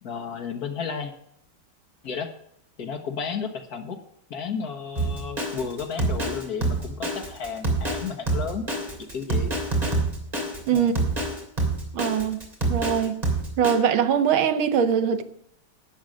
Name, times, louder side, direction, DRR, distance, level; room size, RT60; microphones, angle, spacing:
voice 1, 0.0-1.1 2.0-2.3 2.8-4.0 4.3-8.6 9.1-9.5 10.7-10.9, left 6 dB, 50° left, 1.6 m, -32 dB
Drum kit, 5.0-13.7, right 2 dB, 20° right, 3.1 m, -26 dB
voice 2, 11.9-12.4 12.7-13.2 13.6-15.2, right 8 dB, 80° right, 1.7 m, -22 dB
12.0 x 8.7 x 6.3 m
omnidirectional pair, 2.2 m